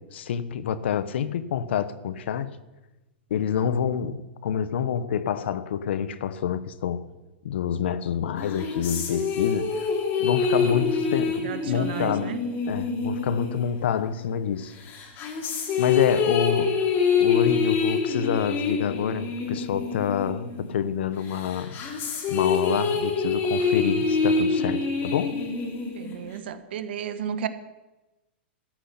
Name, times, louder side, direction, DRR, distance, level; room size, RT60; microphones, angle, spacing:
voice 1, 0.1-2.5 3.3-7.0 7.4-9.9 10.2-12.4 12.7-14.7 15.8-16.8 17.2-21.8 22.3-25.4, left 8 dB, 70° left, 1.0 m, -27 dB
sound 1, 8.4-14.3 14.9-20.9 21.3-26.4, left 5 dB, 35° left, 3.2 m, -26 dB
voice 2, 11.4-12.4 25.8-27.5, right 9 dB, 70° right, 1.3 m, -33 dB
14.0 x 6.2 x 9.8 m
hypercardioid pair, 120°, 6 cm